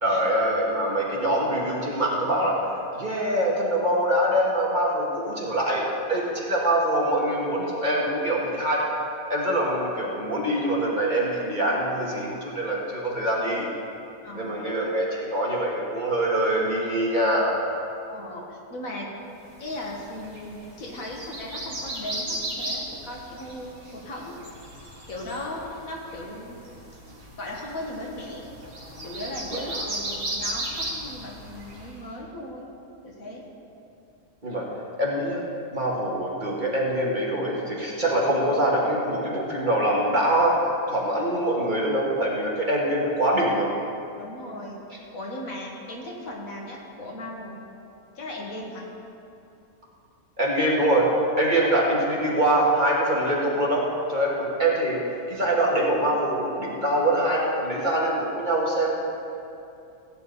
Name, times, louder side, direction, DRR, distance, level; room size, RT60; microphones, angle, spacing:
voice 1, 0.0-2.7 2.9-5.8 6.1-8.8 9.3-13.7 14.3-17.5 34.4-34.7 35.0-35.4 35.7-43.7 50.4-53.8 54.1-55.0 55.3-59.0, right 1 dB, 30° right, -4 dB, 1.7 m, -24 dB
voice 2, 14.2-14.6 18.1-19.1 19.6-24.3 25.1-26.6 27.4-28.5 29.0-32.7 33.0-33.4 44.2-47.6 48.2-48.9, left 1 dB, 65° left, -2 dB, 2.0 m, -37 dB
sound 1, 19.6-32.0, right 1 dB, 55° right, 2.4 m, -36 dB
16.0 x 9.0 x 4.0 m, 2.7 s
omnidirectional pair, 1.6 m